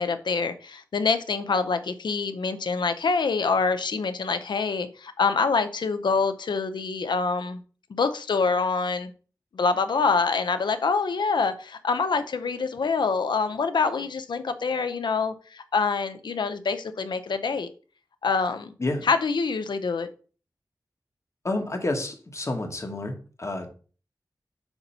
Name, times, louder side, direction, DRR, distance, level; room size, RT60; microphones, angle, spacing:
voice 1, 0.0-7.6 7.9-9.1 9.5-17.7 18.2-18.7 19.0-20.1, left 4 dB, 90° left, 9 dB, 0.5 m, -25 dB
voice 2, 21.4-23.7, left 2 dB, 40° left, 4 dB, 1.1 m, -29 dB
7.0 x 2.7 x 5.3 m, 0.38 s
wide cardioid pair, 90°, 8 cm